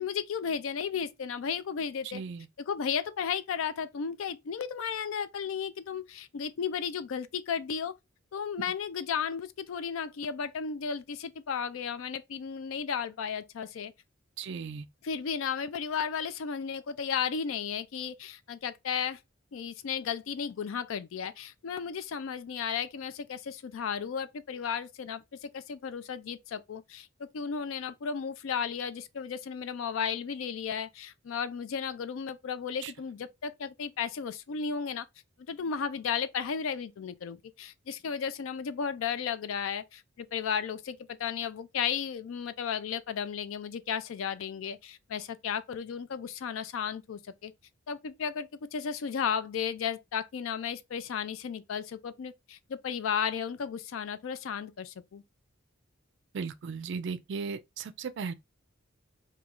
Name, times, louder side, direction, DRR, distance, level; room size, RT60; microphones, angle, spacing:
voice 1, 0.0-2.2 2.6-7.9 8.3-13.9 15.0-19.2 19.5-35.1 35.5-47.5 47.9-55.2, left 7 dB, 75° left, 0.4 m, -34 dB
voice 2, 2.0-2.5 14.4-14.8 32.8-32.9 56.3-58.3, right 5 dB, 60° right, 0.4 m, -36 dB
3.0 x 2.3 x 3.6 m
head